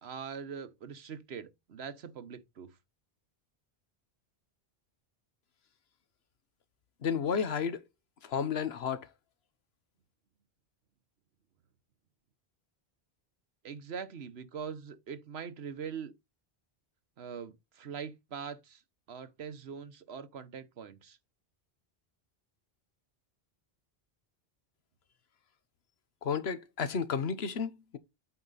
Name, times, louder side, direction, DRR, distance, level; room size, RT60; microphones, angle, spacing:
voice 1, 0.0-2.7 13.6-16.1 17.2-18.8 19.1-21.2, right 6 dB, 85° right, 1.2 m, -42 dB
voice 2, 7.0-7.8 8.2-9.1 26.2-28.0, left 6 dB, 80° left, 1.2 m, -32 dB
8.5 x 4.9 x 4.1 m
omnidirectional pair, 1.0 m